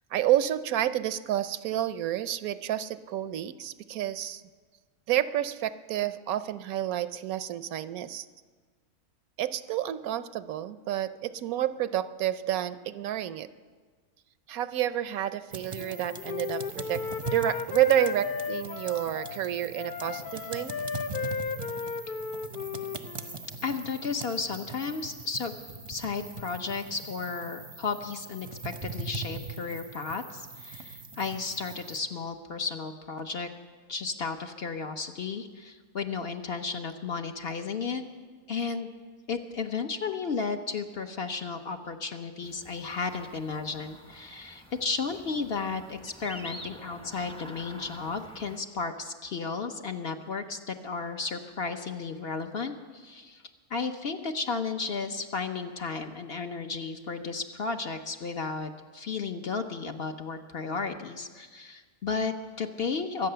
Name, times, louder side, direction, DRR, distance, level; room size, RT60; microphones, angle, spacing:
voice 1, 0.1-4.4 5.1-8.3 9.4-13.5 14.5-17.0 17.3-20.7, right 12 dB, 80° right, 13 dB, 1.1 m, -29 dB
sound 1, 15.5-32.0, right 3 dB, 30° right, 0.7 m, -41 dB
Wind instrument woodwind instrument, 15.8-19.4 19.7-23.4, left 6 dB, 70° left, 0.5 m, -35 dB
voice 2, 23.6-25.6 25.9-33.5 33.9-38.0 38.5-38.9 39.3-53.4 53.7-63.3, left 4 dB, 50° left, 6 dB, 0.9 m, -33 dB
sound 2, 42.4-48.6, equal, 5° left, 0.7 m, -47 dB
23.5 x 9.0 x 6.8 m, 1.5 s
omnidirectional pair, 1.5 m